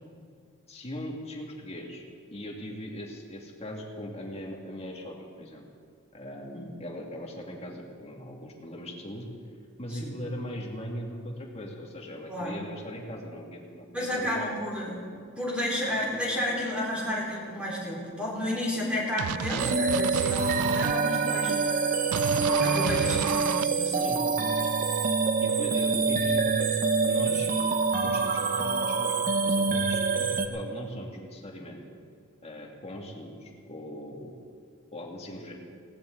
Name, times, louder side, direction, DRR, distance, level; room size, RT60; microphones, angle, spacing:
voice 1, 0.7-2.0 2.3-5.6 6.1-9.3 9.8-14.5 22.5-23.0 24.0-24.2 24.6-24.7 25.4-27.5 28.0-31.8 32.4-34.3 34.9-35.5, equal, 30° left, -1 dB, 2.3 m, -40 dB
voice 2, 13.9-15.1 15.4-21.7 22.6-24.1, left 1 dB, 5° right, -5 dB, 4.3 m, -32 dB
sound 1, 19.2-20.9 22.1-23.6, right 8 dB, 90° right, 0.4 m, -31 dB
sound 2, 19.6-30.5, right 4 dB, 40° right, 0.9 m, -26 dB
19.0 x 17.5 x 3.9 m, 2.1 s
head